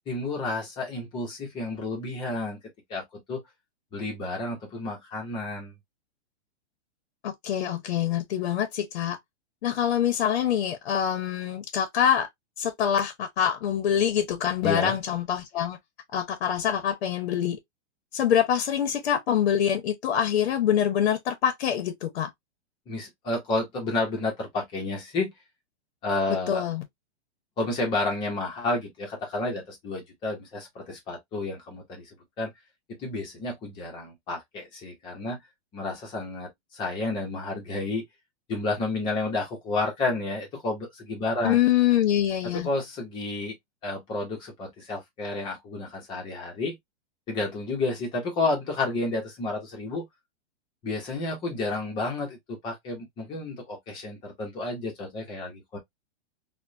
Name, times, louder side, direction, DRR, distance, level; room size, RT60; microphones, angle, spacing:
voice 1, 0.0-2.6 2.9-3.4 3.9-5.7 14.6-15.0 22.9-25.3 26.0-26.6 27.6-32.1 32.4-32.5 33.0-35.4 35.7-38.0 38.5-41.6 42.4-43.5 43.8-46.8 47.3-50.0 50.8-55.8, left 2 dB, 15° left, 0.6 m, -31 dB
voice 2, 7.2-9.2 9.6-12.3 12.6-15.8 16.1-17.6 18.1-22.3 26.5-26.8 41.4-42.7, left 9 dB, 60° left, 0.6 m, -25 dB
2.9 x 2.1 x 2.5 m
hypercardioid pair, 160°, 34 cm